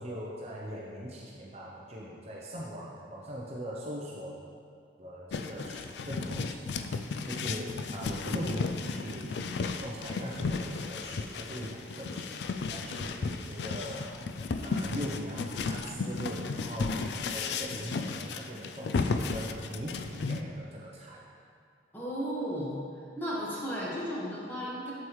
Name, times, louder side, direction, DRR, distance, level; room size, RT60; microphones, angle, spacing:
voice 1, 0.0-4.3 5.0-14.1 14.6-21.2, equal, 35° right, -4 dB, 0.7 m, -41 dB
sound 1, 5.3-20.4, left 4 dB, 70° left, 0.3 m, -34 dB
voice 2, 21.9-22.7 23.2-24.9, equal, 10° left, -7 dB, 1.5 m, -34 dB
7.9 x 7.1 x 3.2 m, 2.3 s
head